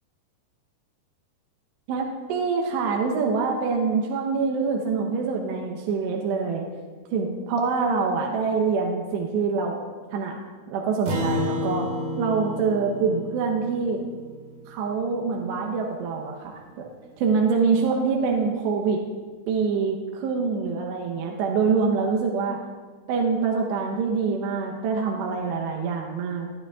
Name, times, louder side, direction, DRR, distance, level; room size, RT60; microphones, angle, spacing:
voice 1, 1.9-6.7 7.1-9.8 10.1-10.4 10.7-11.9 12.2-14.0 14.7-16.9 17.2-19.0 19.5-22.6 23.1-26.5, right 5 dB, 75° right, 0 dB, 2.9 m, -25 dB
Acoustic guitar, 11.1-15.7, left 1 dB, 50° right, 3.4 m, -32 dB
18.5 x 11.5 x 2.4 m, 1.5 s
omnidirectional pair, 5.4 m